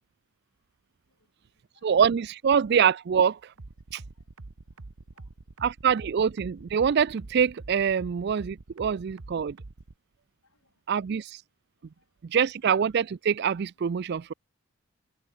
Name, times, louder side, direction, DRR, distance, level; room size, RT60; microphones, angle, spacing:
voice 1, 1.0-1.9 4.0-5.6 7.9-8.1 9.1-9.2 10.4-11.1 11.8-12.4, left 3 dB, 80° left, 6.0 m, -72 dB
voice 2, 1.8-3.4 3.9-4.0 5.6-9.6 10.9-11.4 12.3-14.3, right 7 dB, 50° right, 0.4 m, -25 dB
sound 1, 3.6-9.9, right 2 dB, 85° right, 1.1 m, -45 dB
head